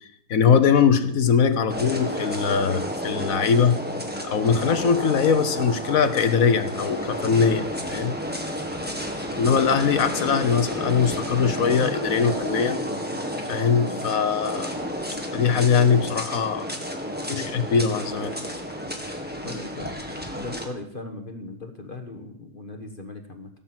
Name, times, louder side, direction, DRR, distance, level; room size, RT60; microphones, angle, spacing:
voice 1, 0.3-3.8 4.2-8.1 9.4-12.8 13.5-14.7 15.3-16.7 17.3-18.3, left 6 dB, 50° left, 10 dB, 1.2 m, -21 dB
sound 1, 1.7-20.6, equal, 5° right, 1.5 m, -31 dB
voice 2, 19.4-19.9 20.4-23.5, left 3 dB, 30° left, 5 dB, 1.1 m, -37 dB
16.5 x 7.0 x 7.6 m, 0.72 s
omnidirectional pair, 2.2 m